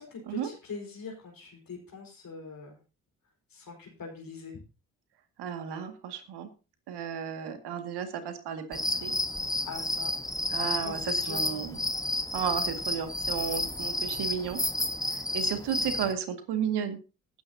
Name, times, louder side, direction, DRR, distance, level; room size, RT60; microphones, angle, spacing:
voice 1, 0.0-2.8 3.5-4.6 9.6-10.1 10.6-11.6, left 5 dB, 55° left, 0 dB, 4.5 m, -42 dB
voice 2, 5.4-6.5 6.9-9.1 10.5-11.8 12.3-14.6 15.3-17.0, right 8 dB, 70° right, 8 dB, 2.1 m, -33 dB
sound 1, 8.7-16.1, left 2 dB, 10° left, 1.4 m, -31 dB
19.5 x 9.5 x 2.8 m, 0.32 s
hypercardioid pair, 40°, 41 cm